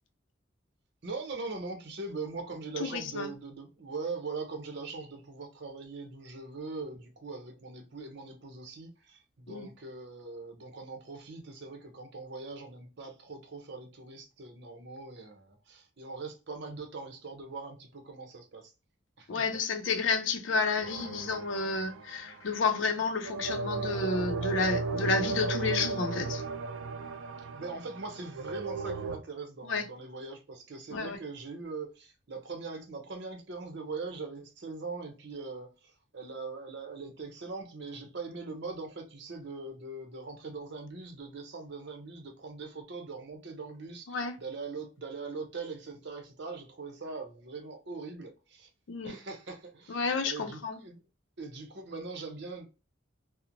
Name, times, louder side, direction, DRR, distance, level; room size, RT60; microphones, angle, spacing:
voice 1, 1.0-18.7 19.2-19.3 27.6-48.7 49.0-51.0 51.4-52.7, right 3 dB, 65° right, 0.7 m, -41 dB
voice 2, 2.9-3.3 9.5-9.7 19.3-26.4 29.6-29.8 30.9-31.2 44.1-44.4 48.9-49.1 49.9-50.8, left 4 dB, 85° left, 0.5 m, -30 dB
sound 1, 20.8-22.5 23.2-29.2, right 4 dB, 90° right, 0.4 m, -35 dB
2.9 x 2.0 x 2.5 m
head